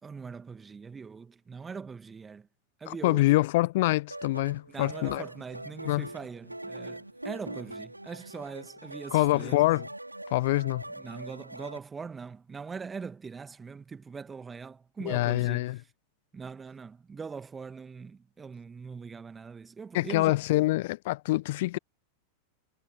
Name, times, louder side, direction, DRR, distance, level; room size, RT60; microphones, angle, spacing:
voice 1, 0.0-2.5 2.8-3.3 4.7-9.7 10.9-15.7 16.3-20.4, right 5 dB, 15° right, 2.2 m, -42 dB
voice 2, 2.9-5.2 5.8-6.1 9.1-9.9 10.3-10.8 15.0-15.8 19.9-21.8, left 19 dB, 50° left, 1.3 m, -25 dB
sound 1, 4.1-11.8, right 1 dB, 85° right, 4.3 m, -42 dB
figure-of-eight pair, 90°, 0 cm